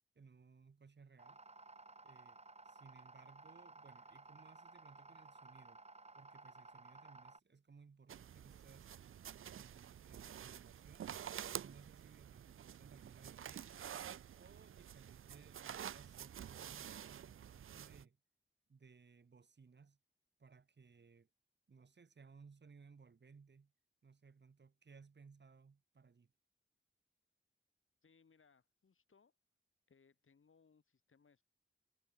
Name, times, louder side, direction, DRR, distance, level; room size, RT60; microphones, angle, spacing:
voice 1, 0.2-1.4 2.0-5.8 6.1-8.9 9.5-11.1 11.5-13.9 14.3-18.2 18.7-20.0 20.4-21.3 21.7-23.7 24.0-26.3, right 5 dB, 55° right, 1.8 m, -62 dB
sound 1, 1.2-7.4, right 3 dB, 30° right, 1.5 m, -57 dB
sound 2, 8.1-18.0, right 9 dB, 80° right, 0.4 m, -49 dB
voice 2, 28.0-29.3 29.9-31.4, left 5 dB, 75° left, 4.8 m, -70 dB
wide cardioid pair, 100°, 21 cm